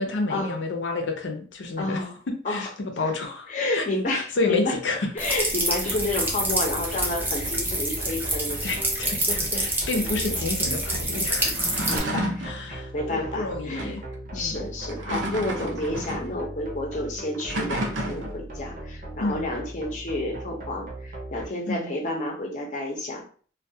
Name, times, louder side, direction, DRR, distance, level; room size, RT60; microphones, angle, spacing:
voice 1, 0.0-2.0 2.5-5.1 8.6-11.6 12.4-14.0 14.3-14.7 19.2-19.4 21.7-21.9, left 3 dB, 85° left, 3 dB, 0.6 m, -30 dB
voice 2, 1.8-2.2 2.4-2.7 3.0-3.1 3.5-4.8 5.1-8.7 9.3-10.4 11.4-11.6 11.9-14.0 14.3-23.2, left 2 dB, 40° left, 1 dB, 0.6 m, -30 dB
sound 1, 5.2-12.0, right 1 dB, 10° right, 0.4 m, -27 dB
sound 2, 5.9-21.5, right 1 dB, 50° right, 0.6 m, -38 dB
sound 3, 11.5-12.6 13.7-14.0 14.8-16.3 17.3-18.4, right 1 dB, 85° right, 0.6 m, -31 dB
2.3 x 2.2 x 2.7 m, 0.43 s
head